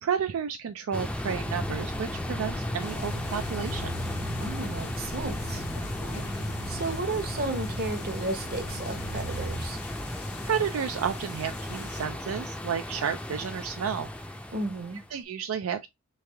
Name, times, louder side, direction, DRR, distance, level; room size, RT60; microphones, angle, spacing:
voice 1, 0.0-3.9 10.4-14.1 15.1-15.9, right 7 dB, 70° right, 0.4 m, -31 dB
sound 1, 0.9-15.1, left 1 dB, 5° left, 0.5 m, -35 dB
sound 2, 1.5-9.7, equal, 55° left, 0.6 m, -40 dB
sound 3, 2.8-12.1, left 3 dB, 75° left, 1.3 m, -45 dB
voice 2, 4.4-6.2 6.7-9.8 14.5-15.0, right 2 dB, 45° right, 0.9 m, -34 dB
3.4 x 3.3 x 3.2 m
head